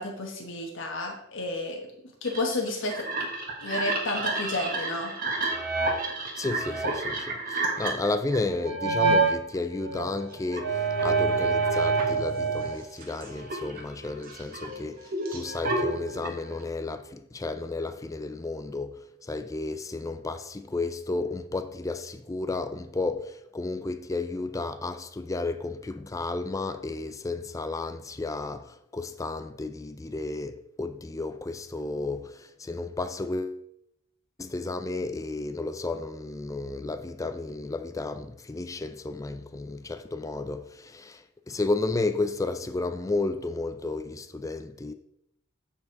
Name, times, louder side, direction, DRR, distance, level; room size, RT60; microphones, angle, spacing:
voice 1, 0.0-1.8 2.2-3.1 3.6-5.1, left 2 dB, 60° left, 1.3 m, -31 dB
sound 1, 2.3-9.3 9.8-12.7 13.0-16.6, right 3 dB, 45° right, 1.5 m, -28 dB
voice 2, 6.4-33.6 34.4-44.9, left 3 dB, 15° left, 0.4 m, -32 dB
8.5 x 4.6 x 4.6 m
head